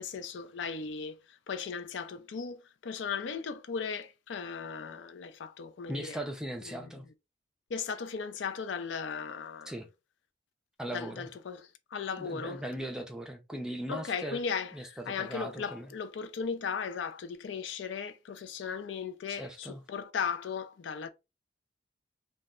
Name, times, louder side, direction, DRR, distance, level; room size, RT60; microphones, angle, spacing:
voice 1, 0.0-6.2 6.7-7.0 7.7-9.7 10.9-12.6 13.9-21.1, left 6 dB, 85° left, 0.4 m, -37 dB
voice 2, 5.9-7.1 9.7-9.9 10.8-11.3 12.2-14.4 14.7-15.9 19.4-19.8, right 1 dB, 5° right, 0.4 m, -39 dB
2.2 x 2.0 x 3.5 m
head